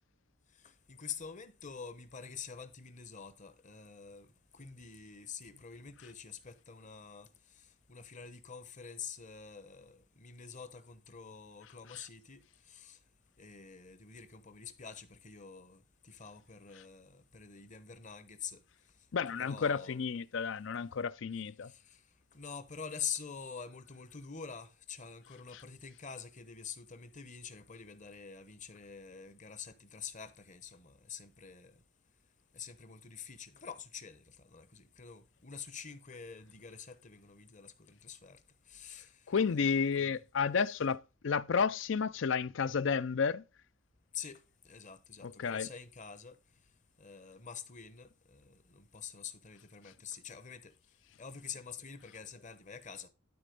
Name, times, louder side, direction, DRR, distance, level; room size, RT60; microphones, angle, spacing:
voice 1, 0.9-4.3 4.5-7.3 7.9-12.4 12.7-13.0 13.4-18.6 19.4-20.0 21.7-21.8 22.3-31.7 32.5-38.4 38.7-39.1 39.5-40.1 44.1-46.4 47.0-50.7 51.2-53.1, left 7 dB, 35° left, 1.0 m, -46 dB
voice 2, 19.1-21.7 25.5-25.6 39.3-43.4 45.2-45.7, left 6 dB, 65° left, 0.5 m, -32 dB
12.5 x 4.2 x 5.2 m
head